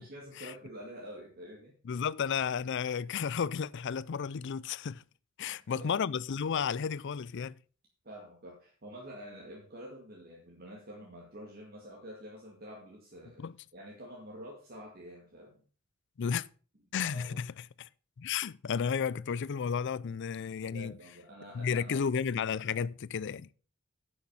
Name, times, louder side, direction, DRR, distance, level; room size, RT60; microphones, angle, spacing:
voice 1, 0.0-1.7 5.4-5.9 8.0-13.4 13.7-15.6 17.0-17.4 20.6-22.0, equal, 45° right, 2.3 m, -48 dB
voice 2, 1.9-5.0 5.4-7.5 13.4-13.5 16.2-16.5 16.9-17.9 18.2-21.0 21.5-23.5, left 6 dB, 60° left, 0.4 m, -33 dB
9.9 x 6.5 x 5.6 m
head